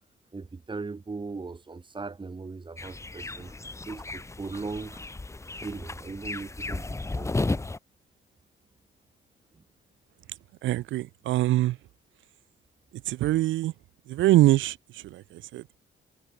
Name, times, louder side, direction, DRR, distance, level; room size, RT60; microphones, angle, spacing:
voice 1, 0.3-3.5 3.8-5.0 5.6-7.6 9.5-9.6, right 4 dB, 25° right, 2.1 m, -38 dB
sound 1, 2.8-7.8, left 2 dB, 15° left, 1.0 m, -34 dB
voice 2, 10.6-11.8 13.1-13.7 14.1-15.8, right 15 dB, 75° right, 0.5 m, -24 dB
cardioid pair, 90°, 20 cm